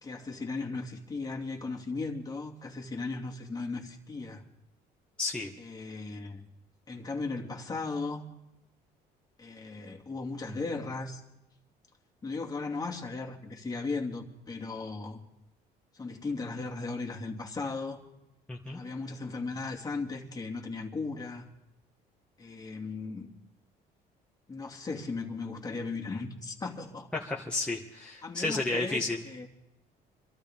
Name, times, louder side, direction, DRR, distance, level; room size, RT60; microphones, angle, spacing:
voice 1, 0.0-4.4 5.6-6.4 6.9-8.3 9.4-11.2 12.2-15.2 15.9-18.0 18.7-21.5 22.4-23.3 24.5-27.1 28.2-29.5, left 3 dB, 20° left, 2.5 m, -36 dB
voice 2, 5.2-5.5 18.5-18.8 27.1-29.2, left 3 dB, 5° left, 1.8 m, -32 dB
25.5 x 13.5 x 3.7 m
cardioid pair, 110°, 17 cm